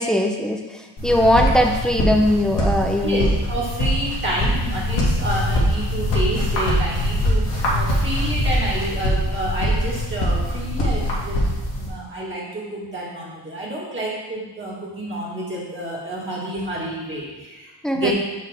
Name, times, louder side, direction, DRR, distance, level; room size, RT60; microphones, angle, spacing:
voice 1, 0.0-3.3 17.8-18.1, left 1 dB, ahead, 2 dB, 0.5 m, -20 dB
sound 1, 1.0-11.9, equal, 75° left, 2.0 m, -22 dB
voice 2, 3.0-11.4 11.7-18.1, right 1 dB, 25° right, -6 dB, 1.6 m, -29 dB
6.7 x 6.0 x 3.4 m, 1.2 s
wide cardioid pair, 145°, 42 cm